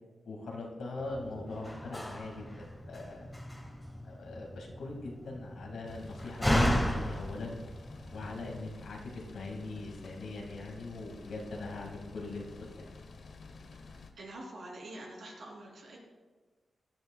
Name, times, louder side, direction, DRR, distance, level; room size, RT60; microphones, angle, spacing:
voice 1, 0.3-3.3 4.0-7.6 8.1-9.0 9.3-13.0, left 2 dB, 90° left, 0 dB, 2.0 m, -41 dB
Slam, 1.0-8.6, equal, 10° left, 1.8 m, -34 dB
sound 1, 5.8-14.1, left 4 dB, 75° left, 1.0 m, -51 dB
voice 2, 13.7-16.0, right 1 dB, 80° right, -1 dB, 3.1 m, -46 dB
16.0 x 10.5 x 2.3 m, 1.3 s
cardioid pair, 65°, 0 cm